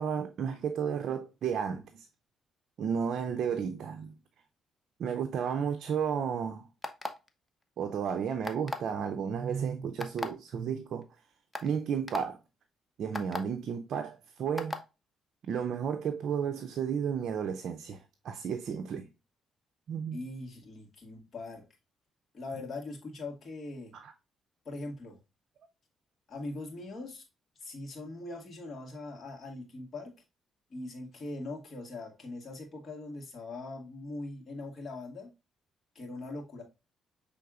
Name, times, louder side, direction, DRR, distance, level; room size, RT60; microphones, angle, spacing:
voice 1, 0.0-2.1 2.8-4.1 5.0-6.7 7.8-11.1 11.6-12.4 13.0-14.7 15.4-19.1 19.9-20.2 23.9-24.1, right 7 dB, 65° right, 0.4 m, -33 dB
sound 1, 6.8-7.3 8.4-8.9 10.0-10.3 11.0-11.1 11.5-11.7 12.1-12.2 13.1-13.4 14.6-14.8, left 2 dB, 15° left, 0.7 m, -35 dB
voice 2, 20.1-21.6 22.3-23.9 24.7-25.2 26.3-27.2 27.6-30.1 30.7-35.3 36.0-36.6, left 2 dB, 45° left, 1.9 m, -41 dB
5.9 x 3.4 x 2.4 m
cardioid pair, 90°, 0 cm